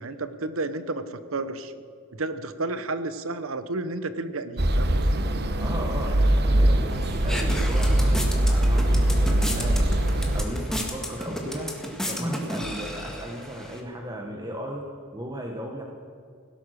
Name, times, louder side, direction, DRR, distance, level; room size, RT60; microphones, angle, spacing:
voice 1, 0.0-1.7 2.1-5.2, right 2 dB, 85° right, 12 dB, 1.0 m, -32 dB
sound 1, 4.6-10.4, right 1 dB, 55° right, 1.1 m, -22 dB
voice 2, 5.6-11.7 12.1-14.8 15.1-15.8, right 1 dB, 20° right, 1 dB, 1.3 m, -36 dB
sound 2, 6.9-13.8, equal, 5° left, 1.8 m, -33 dB
17.0 x 12.0 x 6.5 m, 2.4 s
head